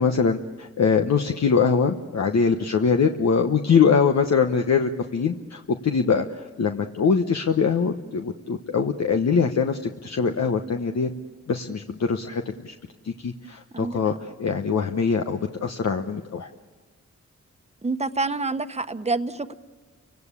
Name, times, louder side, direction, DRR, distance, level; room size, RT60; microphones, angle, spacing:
voice 1, 0.0-11.1 11.5-12.7 13.0-16.5, left 5 dB, 65° left, 5 dB, 1.1 m, -23 dB
voice 2, 17.8-19.5, right 3 dB, 20° right, 9 dB, 1.2 m, -27 dB
29.5 x 17.5 x 8.4 m, 1.4 s
cardioid pair, 55°, 29 cm